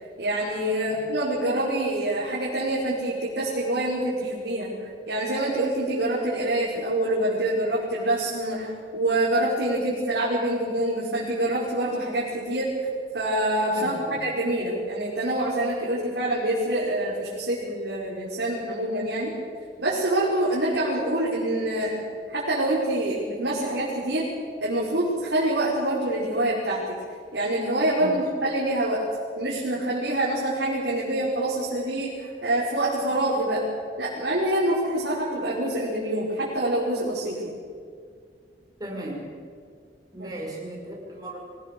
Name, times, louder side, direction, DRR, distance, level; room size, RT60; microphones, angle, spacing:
voice 1, 0.2-4.7 5.1-12.9 13.1-19.3 19.8-24.3 24.6-26.8 27.3-29.0 29.4-33.6 34.0-37.4 40.2-40.3, right 1 dB, 80° right, -7 dB, 5.4 m, -26 dB
voice 2, 13.8-14.2 28.0-28.2 38.8-39.2 40.1-41.4, right 1 dB, 25° right, -1 dB, 5.7 m, -36 dB
25.0 x 19.0 x 6.9 m, 2.1 s
head